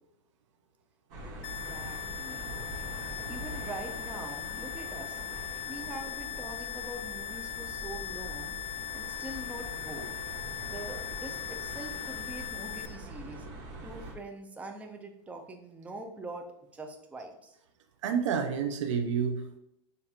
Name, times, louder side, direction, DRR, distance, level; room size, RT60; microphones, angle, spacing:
sound 1, 1.1-14.1, right 1 dB, 50° right, 1.3 m, -43 dB
voice 1, 1.2-2.5 3.3-5.2 5.7-8.5 8.9-10.2 10.6-13.5 13.8-16.5 16.7-17.5, right 2 dB, 10° right, 4 dB, 0.5 m, -44 dB
sound 2, 1.4-12.9, left 11 dB, 75° left, 0.4 m, -39 dB
voice 2, 18.0-19.6, right 6 dB, 85° right, 7 dB, 0.6 m, -29 dB
6.6 x 2.6 x 2.8 m, 0.78 s
supercardioid pair, 125°, 15 cm